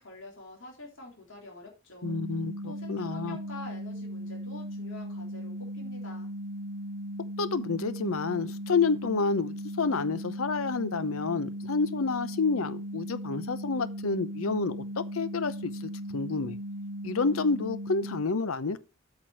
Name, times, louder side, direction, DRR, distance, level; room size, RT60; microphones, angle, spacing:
voice 1, 0.0-2.1 2.6-6.3, left 3 dB, 60° left, 3.7 m, -46 dB
voice 2, 2.0-3.4 7.4-16.6 17.0-18.8, left 4 dB, 80° left, 0.7 m, -29 dB
sound 1, 2.0-18.2, equal, 75° right, 0.7 m, -38 dB
8.7 x 6.0 x 4.6 m
head